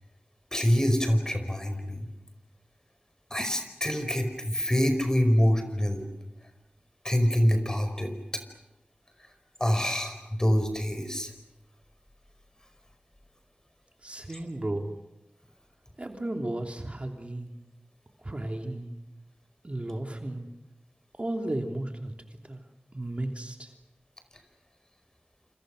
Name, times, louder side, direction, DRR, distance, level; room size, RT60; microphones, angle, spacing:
voice 1, 0.5-2.1 3.3-6.0 7.0-8.1 9.6-11.3, equal, 20° left, 7 dB, 4.9 m, -25 dB
voice 2, 14.0-15.0 16.0-17.6 18.2-18.9 19.6-20.5 21.2-22.1 22.5-22.6 22.9-23.7, right 1 dB, 40° right, 3 dB, 3.0 m, -34 dB
28.5 x 28.0 x 6.5 m, 0.96 s
wide cardioid pair, 70°, 3 cm